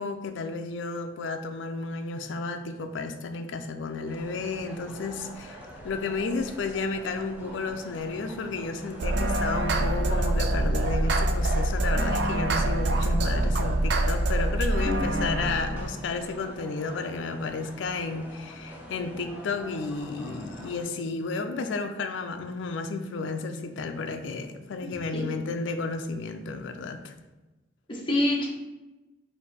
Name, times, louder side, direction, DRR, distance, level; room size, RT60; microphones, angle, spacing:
voice 1, 0.0-27.1, left 4 dB, 80° left, 6 dB, 0.4 m, -32 dB
sound 1, 4.0-20.9, equal, 10° right, 0.7 m, -45 dB
sound 2, 9.0-16.0, right 1 dB, 60° right, 0.4 m, -25 dB
voice 2, 14.8-15.3 25.1-25.2 27.9-28.5, left 1 dB, 25° left, -3 dB, 0.9 m, -27 dB
4.2 x 2.7 x 4.0 m, 1.1 s
head